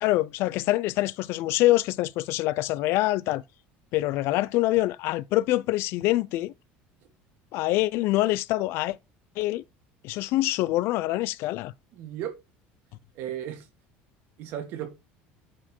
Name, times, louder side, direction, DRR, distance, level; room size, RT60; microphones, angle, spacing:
voice 1, 0.0-3.4 3.9-6.5 7.5-9.0 9.4-9.6 10.0-11.7, left 17 dB, 60° left, 0.4 m, -25 dB
voice 2, 12.0-12.3 13.2-13.6 14.4-14.9, right 10 dB, 55° right, 2.0 m, -34 dB
8.6 x 4.4 x 4.4 m
cardioid pair, 150°, 5 cm